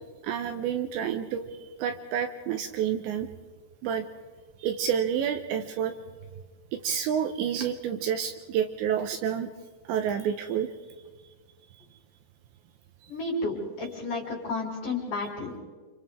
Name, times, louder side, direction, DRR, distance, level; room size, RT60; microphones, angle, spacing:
voice 1, 0.2-3.3 3.8-4.0 4.6-6.0 6.7-9.5 9.9-10.7, right 8 dB, 80° right, 6 dB, 2.9 m, -29 dB
voice 2, 13.1-15.5, left 2 dB, 45° left, -1 dB, 4.9 m, -32 dB
30.0 x 27.5 x 3.6 m, 1.5 s
omnidirectional pair, 5.7 m